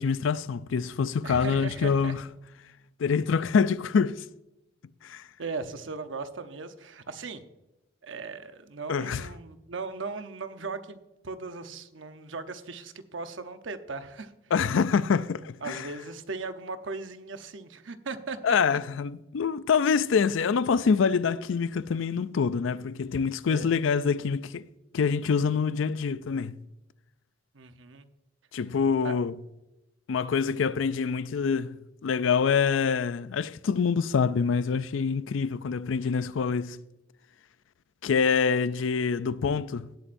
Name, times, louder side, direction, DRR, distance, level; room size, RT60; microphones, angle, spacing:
voice 1, 0.0-2.2 3.0-4.2 5.0-5.2 8.9-9.3 14.5-15.8 18.4-24.7 24.9-26.6 28.5-29.3 30.1-31.8 32.0-36.8 38.0-39.9, left 6 dB, 75° left, 0.4 m, -26 dB
voice 2, 1.2-2.2 5.4-7.4 8.0-11.0 11.2-14.5 15.6-18.8 23.5-23.7 27.5-28.1 29.0-29.1, right 4 dB, 70° right, 0.9 m, -38 dB
17.0 x 8.5 x 2.6 m
head